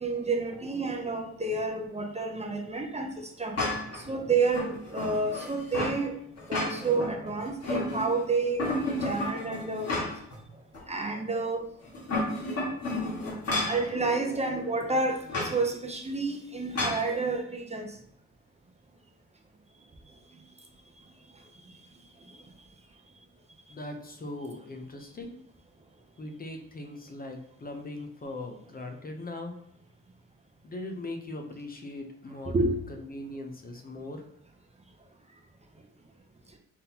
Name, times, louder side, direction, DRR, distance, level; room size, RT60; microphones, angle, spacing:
voice 1, 0.0-3.6 3.9-6.1 6.5-8.6 9.0-9.9 10.9-11.6 13.7-15.2 15.4-17.9 32.5-32.7, right 3 dB, 20° right, 3 dB, 0.6 m, -29 dB
sound 1, 3.6-4.0 4.5-6.0 6.4-7.1 7.4-8.2 8.6-10.4 10.7-10.8 11.9-13.8 15.3-15.6 16.8-17.1, left 2 dB, 50° left, 1.7 m, -31 dB
voice 2, 23.7-25.4 26.2-29.6 30.6-34.2, left 2 dB, 30° left, 4 dB, 0.6 m, -40 dB
4.1 x 3.6 x 2.8 m, 0.70 s
cardioid pair, 100°, 31 cm